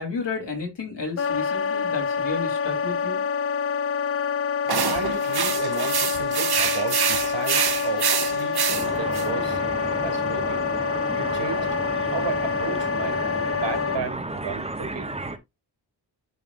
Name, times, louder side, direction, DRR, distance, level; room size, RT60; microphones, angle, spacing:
voice 1, 0.0-3.2, left 4 dB, 70° left, 3.9 m, -32 dB
Wind instrument woodwind instrument, 1.2-14.0, left 6 dB, 35° left, 0.4 m, -26 dB
sound 1, 4.7-9.3, right 7 dB, 60° right, 1.0 m, -26 dB
voice 2, 4.9-9.6 10.0-10.7 11.2-11.7 12.1-13.2 13.5-15.2, right 5 dB, 80° right, 2.5 m, -33 dB
sound 2, 8.7-15.4, right 2 dB, 15° right, 0.9 m, -32 dB
11.0 x 5.0 x 2.6 m
wide cardioid pair, 150°, 43 cm